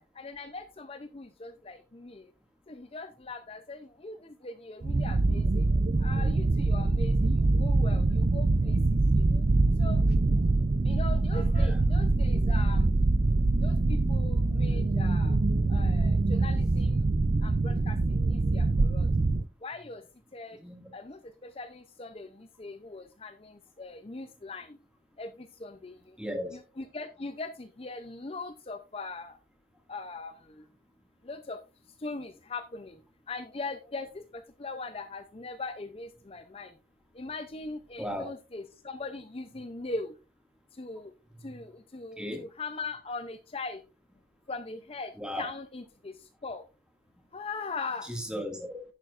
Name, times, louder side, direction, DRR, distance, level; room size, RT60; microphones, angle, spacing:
voice 1, 0.0-2.2 2.7-4.2 4.4-5.4 6.0-8.7 9.2-9.4 9.8-10.0 10.9-12.9 13.6-15.4 15.7-17.0 17.4-18.0 18.3-19.1 19.6-20.0 20.3-20.6 20.9-23.5 23.8-24.7 25.2-25.3 25.6-26.0 26.5-29.3 29.9-30.3 31.3-31.6 32.0-32.9 33.3-34.2 34.6-36.7 37.2-40.1 40.8-41.1 41.4-41.7 41.9-43.8 44.5-46.1 46.4-46.6 47.3-48.1, left 3 dB, 35° left, 0.6 m, -40 dB
sound 1, 4.8-19.4, right 2 dB, 45° right, 0.5 m, -24 dB
voice 2, 20.6-20.9 26.2-26.6 38.0-38.3 42.2-42.5 45.2-45.5 48.0-48.8, equal, 5° right, 2.1 m, -36 dB
11.0 x 9.0 x 2.5 m
head